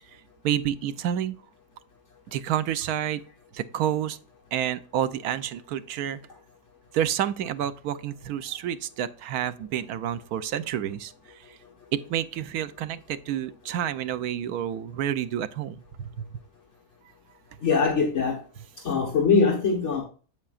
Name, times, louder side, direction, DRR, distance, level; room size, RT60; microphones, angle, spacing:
voice 1, 0.4-1.4 2.3-3.2 3.5-4.2 4.5-6.2 6.9-11.6 11.9-16.3, right 10 dB, 85° right, 1.2 m, -29 dB
voice 2, 17.6-18.4 18.8-20.0, left 5 dB, 55° left, 1.6 m, -22 dB
8.3 x 7.7 x 2.4 m
omnidirectional pair, 1.5 m